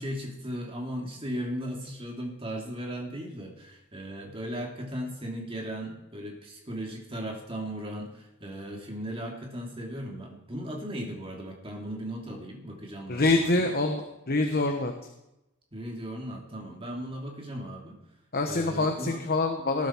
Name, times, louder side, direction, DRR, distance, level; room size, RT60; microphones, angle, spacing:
voice 1, 0.0-13.7 15.7-18.0 18.5-19.2, equal, 25° right, 0 dB, 2.7 m, -37 dB
voice 2, 13.1-14.9 18.3-19.9, left 2 dB, 45° left, 4 dB, 1.1 m, -25 dB
19.0 x 10.5 x 4.5 m, 0.90 s
head